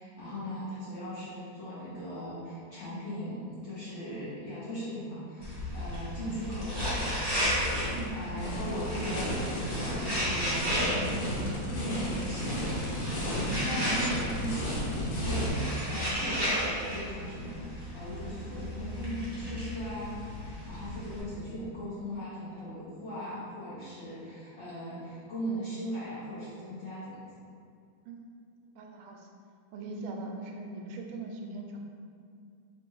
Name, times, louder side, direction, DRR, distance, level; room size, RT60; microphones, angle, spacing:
voice 1, 0.0-7.2 7.6-13.3 13.6-20.1 20.4-27.2, equal, 50° left, -10 dB, 0.9 m, -38 dB
sound 1, 5.4-21.2, equal, 35° right, 0.3 m, -34 dB
sound 2, 6.4-15.5, equal, 90° left, 1.8 m, -34 dB
voice 2, 28.7-29.3 29.7-31.8, right 3 dB, 85° right, 2 dB, 1.4 m, -41 dB
3.4 x 2.9 x 4.4 m, 2.4 s
omnidirectional pair, 2.2 m